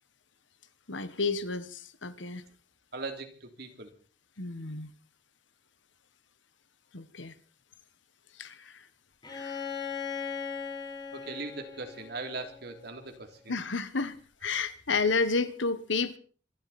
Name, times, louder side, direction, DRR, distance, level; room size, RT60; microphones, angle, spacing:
voice 1, 0.9-2.4 4.4-4.9 6.9-7.4 8.4-8.9 9.3-9.7 13.5-14.2 14.4-16.2, left 4 dB, 90° left, 1.5 m, -31 dB
voice 2, 2.9-3.9 11.1-13.6, right 3 dB, 60° right, 3.3 m, -40 dB
Bowed string instrument, 9.2-13.0, left 6 dB, 25° left, 4.4 m, -38 dB
25.5 x 12.0 x 4.3 m
head